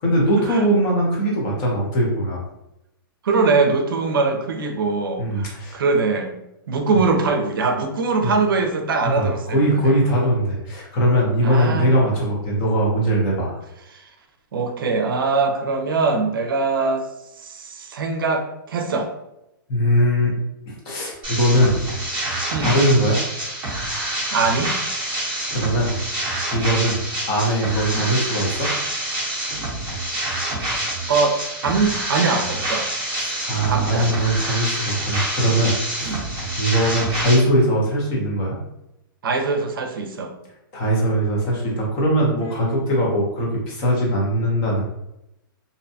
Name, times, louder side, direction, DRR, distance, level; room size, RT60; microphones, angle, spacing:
voice 1, 0.0-2.4 5.2-5.8 8.2-8.3 9.1-13.6 19.7-20.3 20.7-21.7 22.6-23.2 25.5-25.9 26.5-27.0 27.3-28.7 33.2-36.3 36.6-38.6 40.7-44.8, equal, 20° left, -3 dB, 0.6 m, -20 dB
voice 2, 3.2-6.3 6.7-9.9 11.4-11.9 13.9-14.0 14.5-17.1 17.4-19.1 22.5-22.7 24.3-24.7 27.9-28.1 31.1-31.4 31.6-32.9 33.7-34.2 36.0-36.2 39.2-40.3, right 4 dB, 70° right, 4 dB, 0.5 m, -22 dB
sound 1, 21.2-37.4, right 1 dB, 10° right, 0.8 m, -27 dB
2.6 x 2.1 x 2.6 m, 0.86 s
hypercardioid pair, 180°, 12 cm